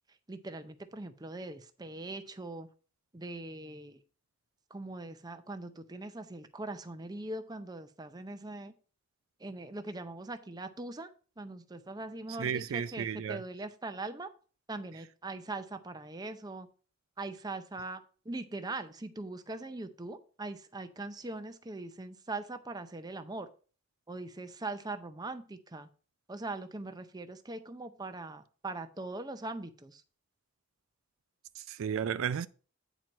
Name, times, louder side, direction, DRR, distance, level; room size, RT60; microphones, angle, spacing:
voice 1, 0.3-2.7 3.1-4.0 4.7-8.7 9.4-11.1 11.4-14.3 14.7-16.7 17.2-23.5 24.1-25.9 26.3-30.0, right 2 dB, 20° right, 0.6 m, -41 dB
voice 2, 12.4-13.4 31.6-32.5, right 7 dB, 70° right, 0.4 m, -33 dB
9.1 x 4.5 x 5.2 m
head